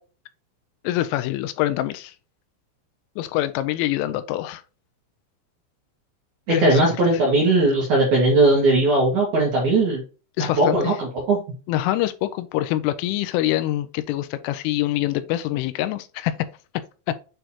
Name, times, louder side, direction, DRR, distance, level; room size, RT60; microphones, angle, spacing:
voice 1, 0.8-2.1 3.2-4.6 6.5-6.8 7.1-7.2 10.4-10.9 11.7-16.3 17.1-17.2, left 14 dB, 85° left, 3.1 m, -25 dB
voice 2, 6.5-10.0 10.6-11.4, right 2 dB, 60° right, 2.1 m, -18 dB
9.0 x 3.8 x 2.8 m
omnidirectional pair, 5.7 m